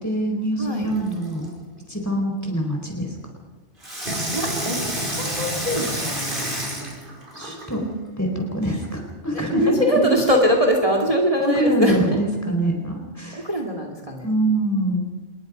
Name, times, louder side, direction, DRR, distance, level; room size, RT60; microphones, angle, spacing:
voice 1, 0.0-1.5 1.9-3.1 7.3-7.8 8.2-10.0 11.4-13.4 14.2-15.0, right 1 dB, 15° left, 2 dB, 4.5 m, -24 dB
voice 2, 0.6-0.9 4.3-6.5 9.3-12.0 13.3-14.3, equal, 30° right, 2 dB, 2.6 m, -22 dB
Water tap faucet / Sink (filling or washing), 0.9-1.5 3.8-7.8 8.4-8.5, right 1 dB, 45° right, 5.5 m, -29 dB
27.0 x 21.0 x 5.3 m, 1.2 s
omnidirectional pair, 1.2 m